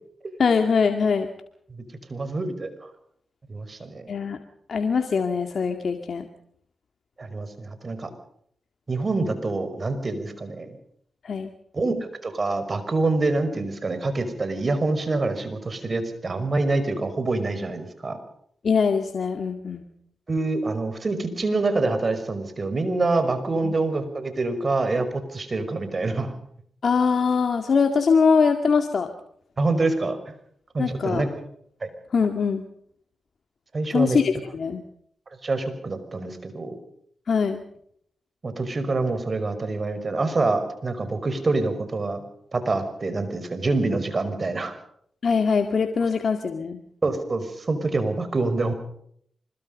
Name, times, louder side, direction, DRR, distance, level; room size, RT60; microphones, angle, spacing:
voice 1, 0.4-1.3 4.1-4.4 4.7-6.3 11.2-11.5 18.6-19.8 23.6-23.7 26.8-29.1 30.8-31.2 32.1-32.6 33.9-34.8 37.3-37.6 45.2-46.8, left 5 dB, 65° left, 6 dB, 2.1 m, -22 dB
voice 2, 2.1-2.7 3.5-4.0 7.2-8.1 8.9-10.7 11.7-12.0 12.2-18.2 20.3-26.3 29.6-30.2 30.7-31.4 31.8-31.9 33.7-34.2 35.4-36.8 38.4-42.2 42.5-44.7 47.0-48.7, right 3 dB, 45° right, 10 dB, 5.5 m, -26 dB
25.0 x 22.5 x 5.4 m, 0.67 s
cardioid pair, 55°, 0 cm